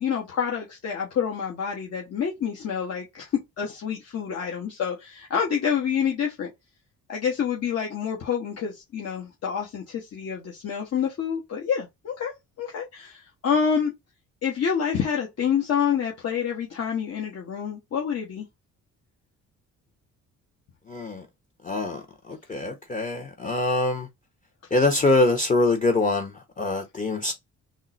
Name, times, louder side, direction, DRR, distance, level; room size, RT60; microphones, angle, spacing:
voice 1, 0.0-3.3 3.6-6.5 7.1-12.3 12.6-13.9 14.4-18.5, left 7 dB, 55° left, 1.2 m, -27 dB
voice 2, 20.9-21.2 21.6-24.1 24.7-27.3, left 2 dB, 25° left, 0.9 m, -24 dB
3.7 x 2.1 x 4.0 m
cardioid pair, 90°, 30 cm